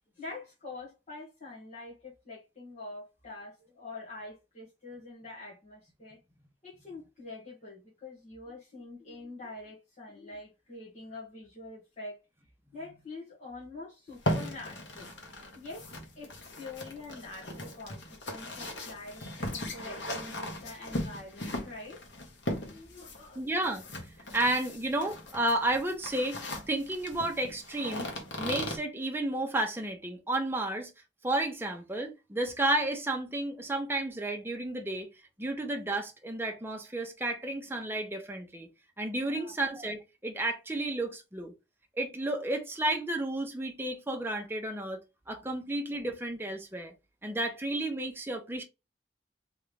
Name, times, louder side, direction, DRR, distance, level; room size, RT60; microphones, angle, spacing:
voice 1, 0.2-6.2 6.6-12.2 12.7-15.9 16.1-22.2 22.5-23.4 39.2-39.5, left 2 dB, 40° left, 1.6 m, -45 dB
sound 1, 14.1-28.8, left 1 dB, 80° left, 1.3 m, -38 dB
voice 2, 23.3-23.8 24.3-28.1 28.4-30.9 31.2-35.1 35.4-38.7 39.0-41.5 42.0-45.0 45.3-46.9 47.2-48.6, right 1 dB, 15° right, 0.8 m, -32 dB
3.6 x 3.2 x 3.3 m
head